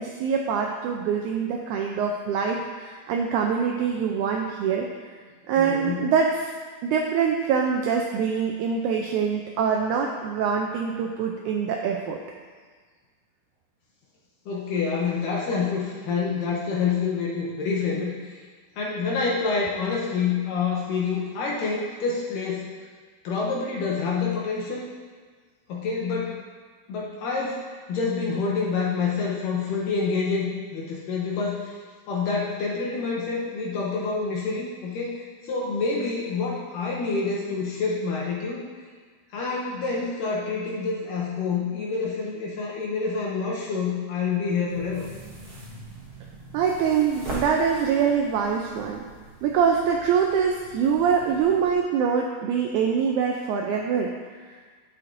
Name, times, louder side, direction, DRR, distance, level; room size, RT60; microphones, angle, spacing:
voice 1, 0.0-4.9 5.5-6.5 6.8-12.2 46.5-49.0 49.4-54.5, right 6 dB, 85° right, 1 dB, 1.7 m, -24 dB
voice 2, 5.6-6.1 14.5-18.4 18.8-22.7 23.2-24.9 25.7-26.4 26.9-31.8 32.1-38.7 39.3-45.1, left 4 dB, 75° left, -4 dB, 2.4 m, -27 dB
sound 1, 44.7-51.7, right 1 dB, 55° right, 1.1 m, -41 dB
9.8 x 7.7 x 2.6 m, 1.5 s
omnidirectional pair, 4.0 m